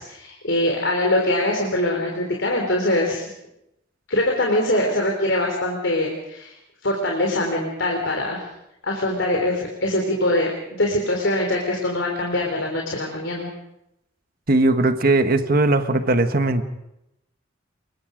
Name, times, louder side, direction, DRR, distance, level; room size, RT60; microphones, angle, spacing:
voice 1, 0.0-3.2 4.1-6.5 6.8-8.5 8.8-13.5, left 1 dB, 75° left, 0 dB, 3.8 m, -23 dB
voice 2, 14.5-16.6, right 2 dB, 50° right, 8 dB, 1.5 m, -19 dB
27.0 x 23.0 x 5.2 m, 0.85 s
head